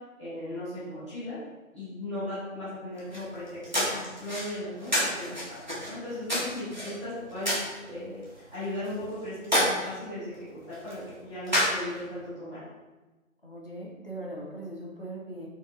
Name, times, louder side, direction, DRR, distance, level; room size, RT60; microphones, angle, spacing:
voice 1, 0.2-1.4 1.7-3.4 3.7-5.6 5.8-8.2 8.5-10.3 10.7-12.6, left 1 dB, 20° left, -16 dB, 1.2 m, -37 dB
sound 1, 3.0-12.2, equal, 35° right, 0.7 m, -32 dB
voice 2, 13.4-15.5, right 1 dB, 45° left, -3 dB, 0.6 m, -40 dB
3.9 x 2.7 x 2.5 m, 1.2 s
figure-of-eight pair, 165°, 42 cm